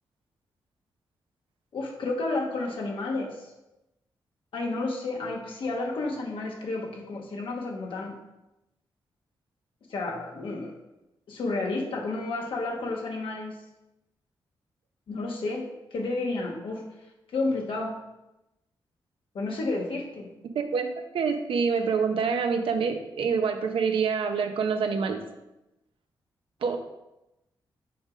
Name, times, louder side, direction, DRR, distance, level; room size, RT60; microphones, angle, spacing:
voice 1, 1.7-3.4 4.5-8.2 9.9-10.7 11.3-13.6 15.1-16.8 17.3-18.0 19.3-20.3, left 2 dB, 75° left, 0 dB, 1.2 m, -31 dB
voice 2, 20.5-20.9 21.1-25.2 26.6-26.8, right 5 dB, 80° right, 5 dB, 0.7 m, -26 dB
6.0 x 3.7 x 5.1 m, 0.94 s
cardioid pair, 80°, 9 cm